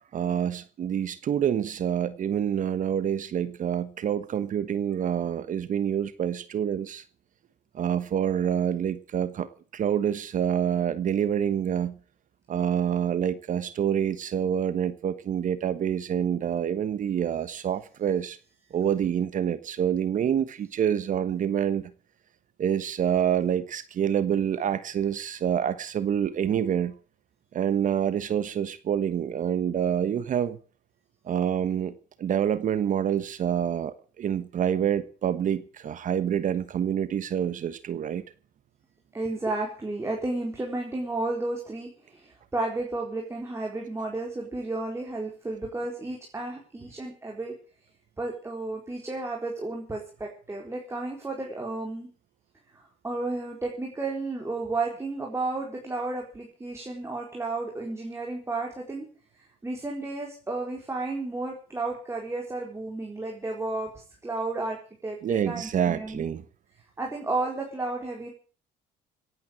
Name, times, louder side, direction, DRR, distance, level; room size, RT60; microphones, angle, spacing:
voice 1, 0.1-7.0 7.7-12.0 12.5-18.4 18.7-21.9 22.6-26.9 27.5-30.6 31.2-38.2 65.2-66.4, right 9 dB, 50° right, 14 dB, 1.2 m, -27 dB
voice 2, 39.1-47.5 48.2-52.1 52.7-59.1 59.6-63.9 64.2-66.3 67.0-68.3, right 2 dB, 15° right, 0 dB, 4.2 m, -32 dB
17.5 x 9.3 x 7.8 m, 0.40 s
cardioid pair, 110°, 17 cm